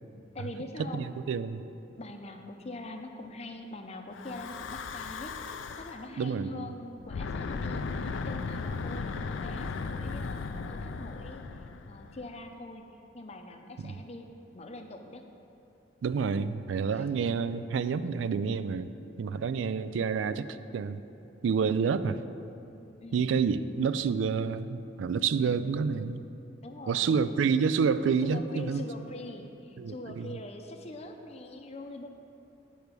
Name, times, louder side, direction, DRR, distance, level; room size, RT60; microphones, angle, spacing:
voice 1, 0.3-1.0 2.0-5.3 5.8-11.4 11.9-12.8 13.1-14.3 14.5-15.3 16.8-17.0 17.9-18.0 19.4-19.8 21.8-22.2 23.0-23.5 25.4-25.8 26.6-27.3 28.2-32.1, left 2 dB, 35° left, 5 dB, 0.6 m, -43 dB
voice 2, 0.9-1.6 6.2-6.7 13.8-14.0 16.0-18.9 19.2-21.0 21.4-22.2 23.1-26.2 26.9-28.8 29.8-30.4, right 6 dB, 80° right, 13 dB, 0.3 m, -28 dB
Breathing / Wind, 4.1-6.1 7.0-12.4, left 4 dB, 80° left, 0.4 m, -36 dB
8.7 x 4.6 x 6.7 m, 2.8 s
head